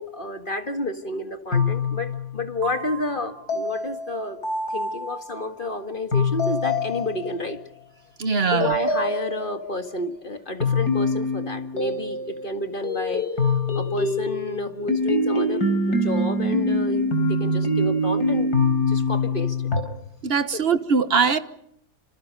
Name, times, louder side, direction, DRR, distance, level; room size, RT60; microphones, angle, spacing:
voice 1, 0.0-4.4 4.7-7.6 8.5-13.3 13.7-18.5 18.9-19.6 20.5-20.6, left 2 dB, 30° left, 1.9 m, -30 dB
sound 1, 1.5-5.4 6.1-7.6 8.6-9.8 10.6-12.5 12.8-19.8, left 2 dB, 55° left, 4.9 m, -24 dB
voice 2, 8.2-8.7 20.2-21.4, right 5 dB, 35° right, 1.2 m, -21 dB
27.5 x 27.0 x 5.4 m
omnidirectional pair, 2.0 m